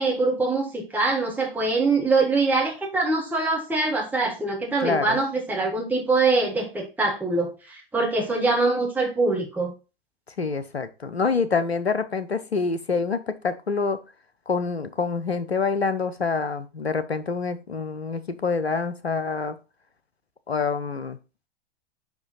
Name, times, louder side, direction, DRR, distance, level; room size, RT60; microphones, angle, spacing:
voice 1, 0.0-9.7, right 3 dB, 5° right, 1.4 m, -23 dB
voice 2, 4.8-5.2 10.4-14.0 14.5-19.6 20.5-21.2, left 4 dB, 85° left, 0.8 m, -26 dB
5.4 x 4.8 x 4.0 m
figure-of-eight pair, 95°, 31 cm